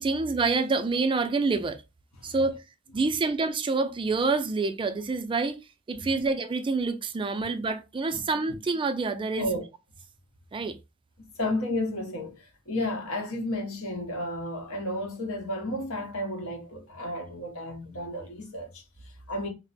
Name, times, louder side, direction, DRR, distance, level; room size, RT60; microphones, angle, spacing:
voice 1, 0.0-1.8 2.2-2.6 2.9-5.6 5.9-9.5 10.5-10.8, right 3 dB, 25° right, 0.3 m, -27 dB
voice 2, 9.3-9.7 11.4-19.5, left 1 dB, 75° left, 1.0 m, -33 dB
2.9 x 2.0 x 4.0 m
head